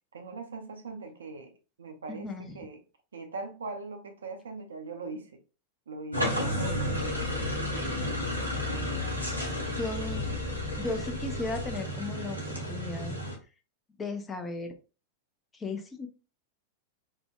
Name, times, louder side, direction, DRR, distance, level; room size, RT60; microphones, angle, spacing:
voice 1, 0.1-1.5 1.8-2.8 3.1-5.4 5.9-7.2 8.2-9.2 9.5-10.3, right 3 dB, 70° right, 0.4 m, -42 dB
voice 2, 2.1-2.6 9.8-10.4 10.8-13.1 14.0-14.7 15.5-16.1, left 3 dB, 15° left, 0.5 m, -36 dB
sound 1, 6.1-13.4, equal, 90° left, 0.6 m, -32 dB
sound 2, 6.6-11.8, left 9 dB, 40° left, 1.0 m, -39 dB
2.6 x 2.1 x 2.3 m
figure-of-eight pair, 90°, 0 cm